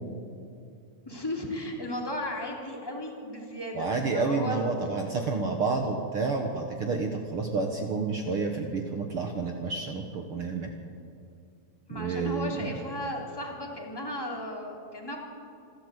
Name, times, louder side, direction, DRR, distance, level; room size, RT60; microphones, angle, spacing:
voice 1, 1.0-4.7 11.9-15.2, left 1 dB, 10° left, -1 dB, 2.3 m, -35 dB
voice 2, 3.7-10.7 11.9-12.7, right 4 dB, 60° right, 3 dB, 1.5 m, -29 dB
26.0 x 13.0 x 8.2 m, 2.6 s
omnidirectional pair, 4.0 m